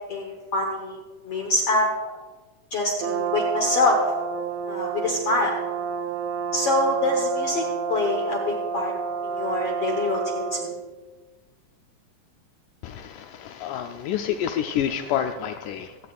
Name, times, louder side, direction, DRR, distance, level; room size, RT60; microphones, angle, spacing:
voice 1, 0.1-1.0 1.2-1.9 2.7-4.0 4.7-5.6 6.5-7.6 7.9-8.9 9.2-10.7, left 2 dB, 60° left, 0 dB, 1.8 m, -25 dB
Brass instrument, 3.0-10.8, right 6 dB, 85° right, 1.4 m, -29 dB
voice 2, 12.8-16.0, left 9 dB, 80° left, 6 dB, 2.0 m, -28 dB
24.5 x 9.4 x 2.4 m, 1.3 s
omnidirectional pair, 3.8 m